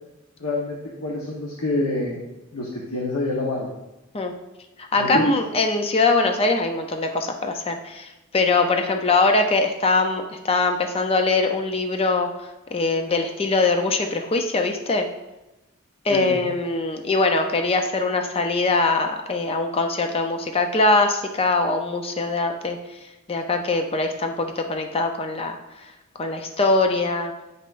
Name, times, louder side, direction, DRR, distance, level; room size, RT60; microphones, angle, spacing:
voice 1, 0.4-2.2 2.5-3.7 4.9-5.3 16.1-16.4, left 2 dB, 80° left, -2 dB, 1.0 m, -26 dB
voice 2, 4.8-12.3 12.7-15.1 16.0-22.8 23.3-25.6 26.2-27.3, left 3 dB, 25° left, 4 dB, 0.5 m, -22 dB
9.1 x 5.5 x 2.5 m, 0.99 s
head